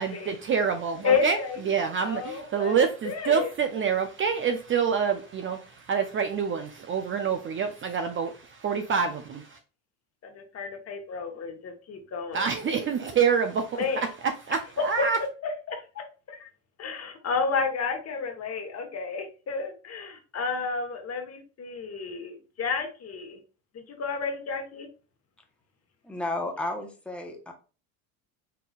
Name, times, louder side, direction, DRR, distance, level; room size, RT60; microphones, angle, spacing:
voice 1, 0.0-1.4 1.6-9.6 12.3-15.2, right 6 dB, 30° right, 0.5 m, -27 dB
voice 2, 1.0-1.6 2.0-2.8 3.0-3.5 10.3-12.8 13.7-14.1 15.4-16.5 16.8-23.4 23.9-24.9, left 5 dB, 35° left, 1.2 m, -31 dB
voice 3, 26.0-27.5, left 2 dB, 5° left, 0.9 m, -32 dB
4.4 x 3.8 x 2.4 m
supercardioid pair, 90°, 41 cm